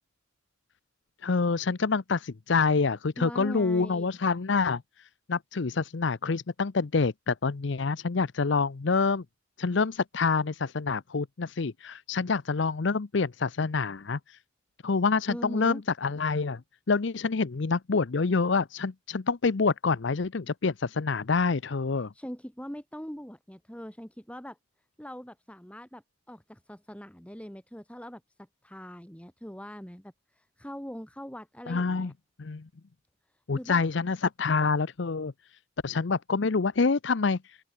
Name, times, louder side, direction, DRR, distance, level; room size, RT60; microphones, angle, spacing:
voice 1, 1.2-9.2 9.6-14.4 14.8-16.6 16.9-22.1 31.7-32.1 32.4-32.7 33.5-37.6, left 4 dB, 65° left, 0.6 m, -27 dB
voice 2, 3.2-4.2 15.3-15.8 22.0-24.6 25.0-32.1 33.5-33.8, equal, 5° left, 2.6 m, -42 dB
open air
head